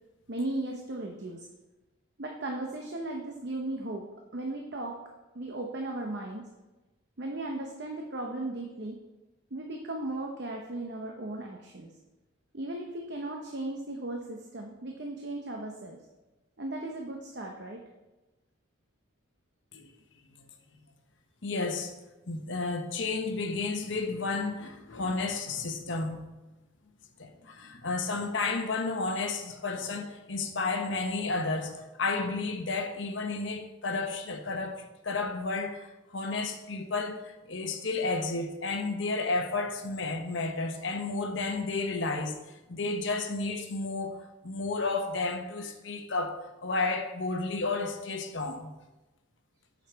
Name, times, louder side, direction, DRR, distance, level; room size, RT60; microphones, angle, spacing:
voice 1, 0.3-1.5 2.2-4.1 4.3-5.0 5.3-6.5 7.2-9.0 9.5-11.9 12.5-16.0 16.6-17.8 29.8-29.9, right 2 dB, 55° right, 0.8 m, -36 dB
voice 2, 21.4-21.9 22.3-26.2 27.2-42.4 42.7-48.7, left 3 dB, 65° left, 1.0 m, -32 dB
8.4 x 6.4 x 4.6 m
head